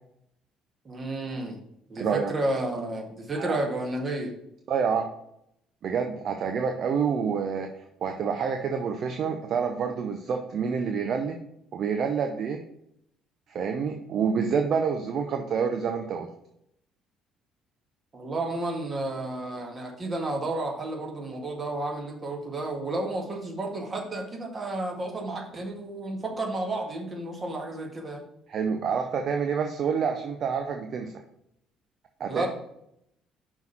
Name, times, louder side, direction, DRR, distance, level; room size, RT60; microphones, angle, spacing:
voice 1, 0.9-1.6 1.9-4.3 18.1-28.2 32.3-32.5, right 2 dB, 30° right, 0 dB, 1.8 m, -31 dB
voice 2, 2.0-2.3 3.4-3.6 4.7-5.1 5.8-11.4 11.7-12.6 13.5-16.3 28.5-31.1 32.2-32.5, right 6 dB, 45° right, 5 dB, 0.6 m, -28 dB
5.7 x 4.4 x 5.8 m, 0.75 s
figure-of-eight pair, 50°, 0 cm